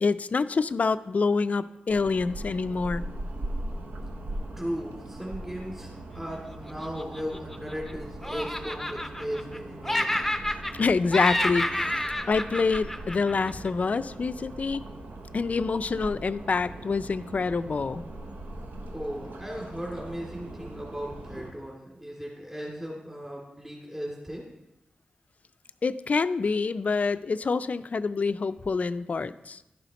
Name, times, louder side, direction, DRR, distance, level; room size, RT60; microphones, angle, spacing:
voice 1, 0.0-3.0 10.8-11.6 12.3-14.8 15.3-18.1 25.8-29.6, left 4 dB, 50° left, 13 dB, 0.4 m, -26 dB
sound 1, 1.9-21.5, right 1 dB, 70° right, 0.9 m, -40 dB
voice 2, 4.6-10.2 18.9-24.5, equal, 10° right, -3 dB, 2.3 m, -36 dB
Laughter, 6.7-7.9 8.2-9.6 9.8-10.9 11.1-13.7, left 1 dB, 5° left, 0.7 m, -29 dB
11.0 x 5.6 x 4.1 m, 0.92 s
cardioid pair, 55°, 3 cm